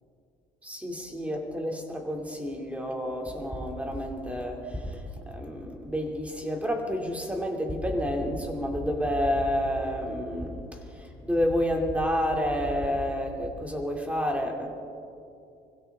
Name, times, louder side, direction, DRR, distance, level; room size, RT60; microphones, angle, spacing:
voice 1, 0.6-14.7, equal, 10° right, 1 dB, 2.6 m, -29 dB
25.0 x 16.0 x 3.6 m, 2.6 s
cardioid pair, 110°, 17 cm